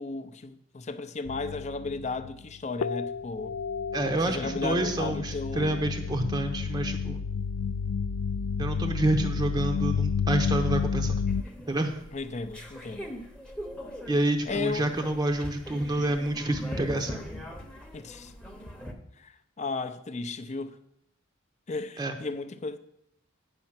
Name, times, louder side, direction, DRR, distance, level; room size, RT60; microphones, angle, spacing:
voice 1, 0.0-3.6 4.3-6.0 12.1-13.1 14.5-15.0 17.9-18.3 19.2-20.8 21.7-22.8, left 3 dB, 35° left, 0.6 m, -35 dB
sound 1, 1.3-2.5 2.8-11.4, left 6 dB, 90° left, 0.3 m, -31 dB
voice 2, 3.9-7.2 8.6-11.1 11.7-11.9 14.1-17.2 22.0-22.1, right 1 dB, 20° right, 0.7 m, -28 dB
sound 2, 11.3-18.9, equal, 5° left, 0.9 m, -41 dB
9.8 x 5.4 x 5.9 m
head